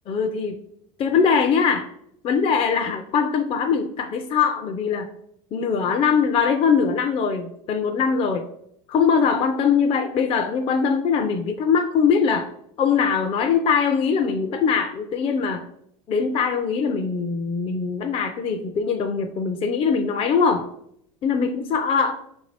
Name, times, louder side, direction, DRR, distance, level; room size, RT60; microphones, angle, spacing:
voice 1, 0.1-0.6 1.0-1.9 2.2-5.1 5.5-8.5 8.9-12.5 12.8-15.7 16.1-20.7 21.2-22.2, left 6 dB, 30° left, 5 dB, 0.4 m, -22 dB
4.9 x 2.6 x 3.2 m, 0.72 s
supercardioid pair, 115°, 17 cm